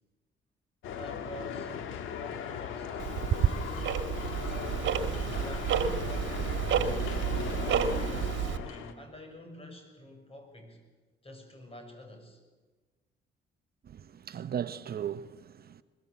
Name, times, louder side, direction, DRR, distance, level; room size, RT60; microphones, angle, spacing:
sound 1, 0.8-8.9, left 7 dB, 85° left, 1.9 m, -37 dB
voice 1, 1.0-6.7 7.4-10.8 11.2-12.4, left 1 dB, 30° left, 6.2 m, -49 dB
Tick-tock, 3.0-8.6, right 8 dB, 70° right, 1.6 m, -30 dB
voice 2, 13.8-15.8, right 9 dB, 50° right, 0.9 m, -37 dB
21.5 x 21.5 x 8.2 m
cardioid pair, 90°, 20 cm